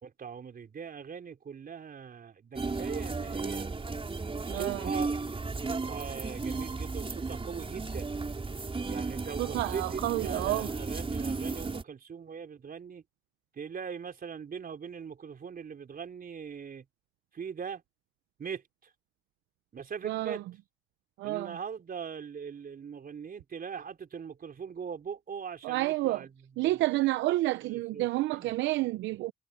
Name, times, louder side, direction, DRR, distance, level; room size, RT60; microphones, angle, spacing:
voice 1, 0.0-3.7 4.4-5.1 5.6-8.2 8.9-13.0 13.5-16.9 17.3-17.8 18.4-18.9 19.7-20.4 21.2-26.8 27.6-28.5, right 6 dB, 50° right, 3.8 m, -41 dB
sound 1, 2.5-11.8, right 3 dB, 30° right, 4.4 m, -35 dB
voice 2, 4.5-4.8 9.4-10.7 20.0-20.4 21.2-21.6 25.6-26.2 26.6-29.3, right 17 dB, 80° right, 0.7 m, -29 dB
supercardioid pair, 55°, 19 cm